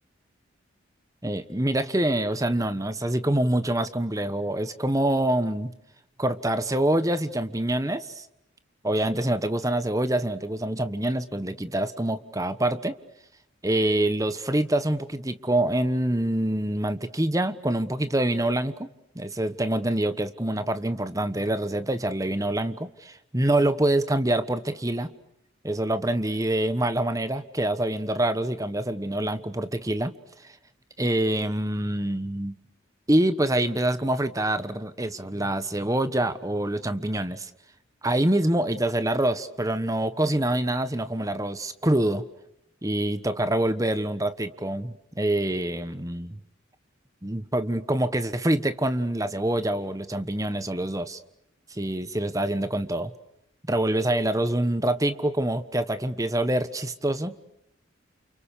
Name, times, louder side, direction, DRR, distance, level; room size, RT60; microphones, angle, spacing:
voice 1, 1.2-5.7 6.2-8.2 8.8-13.0 13.6-18.9 19.1-25.1 25.6-30.1 31.0-32.6 33.1-37.5 38.0-42.2 42.8-46.4 47.2-51.2 51.7-53.1 53.7-57.3, right 1 dB, 15° right, 12 dB, 1.2 m, -26 dB
29.5 x 29.0 x 6.8 m, 0.78 s
head